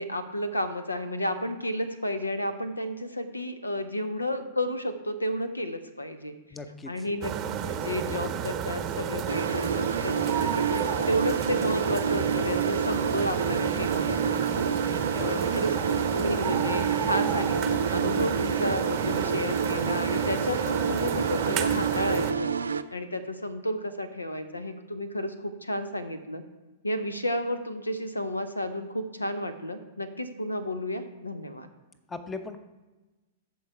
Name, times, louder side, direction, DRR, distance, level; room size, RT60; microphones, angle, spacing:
voice 1, 0.0-6.3 6.9-14.7 15.2-22.5 22.9-26.4 26.8-31.7, left 1 dB, 90° left, 11 dB, 0.7 m, -32 dB
voice 2, 6.5-6.9 15.1-15.3 32.1-32.6, left 3 dB, 15° left, 9 dB, 0.7 m, -38 dB
sound 1, 7.2-22.3, right 9 dB, 30° right, 0.7 m, -31 dB
sound 2, 9.3-22.8, right 6 dB, 80° right, 0.4 m, -28 dB
13.0 x 4.7 x 4.7 m, 1.1 s
figure-of-eight pair, 105°, 0 cm